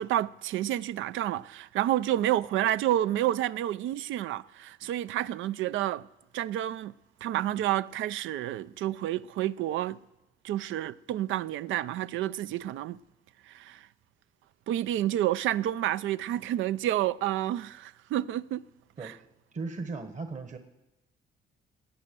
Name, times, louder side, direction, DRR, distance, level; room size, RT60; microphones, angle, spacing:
voice 1, 0.0-6.1 6.3-6.9 7.2-10.0 10.4-13.0 13.5-13.9 14.7-18.7 19.0-19.2, right 13 dB, 80° right, 0.4 m, -29 dB
voice 2, 19.5-20.6, right 3 dB, 40° right, 1.2 m, -36 dB
18.5 x 8.7 x 6.8 m
cardioid pair, 90°, 20 cm